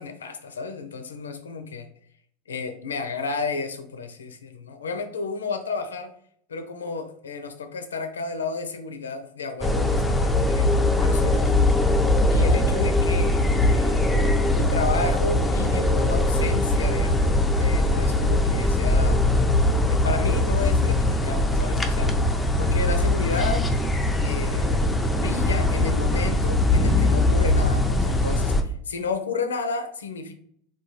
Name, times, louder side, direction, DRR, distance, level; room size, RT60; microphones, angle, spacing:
voice 1, 0.0-1.9 2.5-6.1 6.5-11.8 12.3-14.1 14.5-19.2 19.9-22.1 22.6-23.7 24.2-30.3, left 4 dB, 85° left, 8 dB, 0.4 m, -32 dB
sound 1, 9.6-28.6, left 1 dB, 10° left, 0.4 m, -21 dB
3.6 x 2.2 x 3.0 m, 0.65 s
hypercardioid pair, 90°, 0 cm